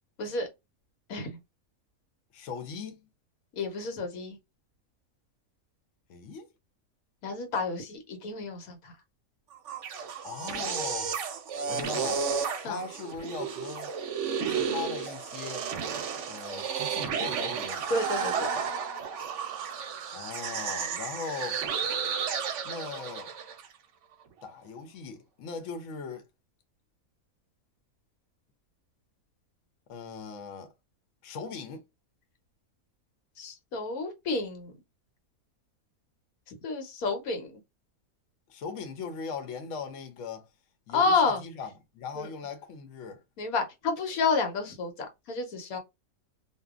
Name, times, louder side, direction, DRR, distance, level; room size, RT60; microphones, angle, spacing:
voice 1, 1.1-1.4 3.5-4.4 7.2-8.9 12.6-12.8 17.9-18.6 33.4-34.7 36.5-37.6 40.9-41.4 42.2-42.3 43.4-45.8, left 4 dB, 90° left, 1.3 m, -30 dB
voice 2, 2.3-3.0 6.1-6.5 10.2-11.2 11.7-12.3 12.6-14.0 14.5-15.7 16.3-17.9 20.1-21.6 22.6-23.3 24.4-26.2 29.9-30.7 31.2-31.8 38.5-40.5 40.9-43.2, left 5 dB, 65° left, 1.0 m, -39 dB
sound 1, 9.5-23.7, right 6 dB, 65° right, 0.9 m, -32 dB
2.7 x 2.3 x 2.3 m
omnidirectional pair, 1.5 m